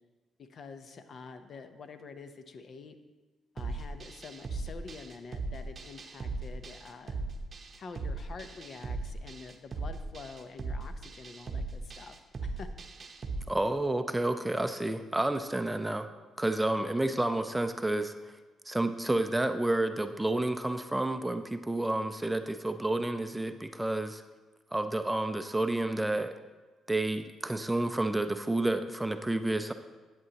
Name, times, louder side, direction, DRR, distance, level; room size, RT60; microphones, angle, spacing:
voice 1, 0.4-3.0 3.5-7.2 7.8-12.7, left 4 dB, 55° left, 9 dB, 0.6 m, -47 dB
sound 1, 3.6-13.4, right 3 dB, 40° right, 0.7 m, -38 dB
voice 2, 13.5-16.1 16.4-18.3 18.7-24.2 24.7-26.3 26.9-29.7, right 2 dB, 10° right, 8 dB, 0.4 m, -30 dB
10.5 x 8.4 x 2.9 m, 1.3 s
cardioid pair, 90°, 0 cm